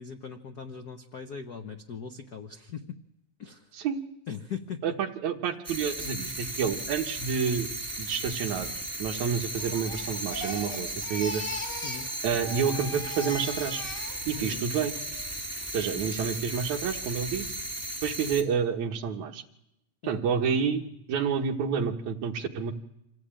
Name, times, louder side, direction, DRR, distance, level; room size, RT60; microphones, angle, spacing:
voice 1, 0.0-3.0 3.4-3.7 4.3-5.0 11.8-12.1 14.4-14.6 15.9-16.1 20.0-20.3, left 6 dB, 90° left, 6 dB, 0.8 m, -40 dB
voice 2, 4.8-7.7 8.0-8.7 9.0-11.4 12.2-13.8 14.3-14.9 15.7-17.5 18.0-19.4 20.1-22.7, right 6 dB, 75° right, 4 dB, 2.7 m, -29 dB
sound 1, 5.6-18.4, right 1 dB, 5° right, 2.0 m, -36 dB
Crying sobbing, 9.6-12.1 12.3-14.5 14.9-15.3, left 1 dB, 20° left, 1.9 m, -39 dB
26.0 x 17.0 x 8.9 m, 0.83 s
omnidirectional pair, 3.4 m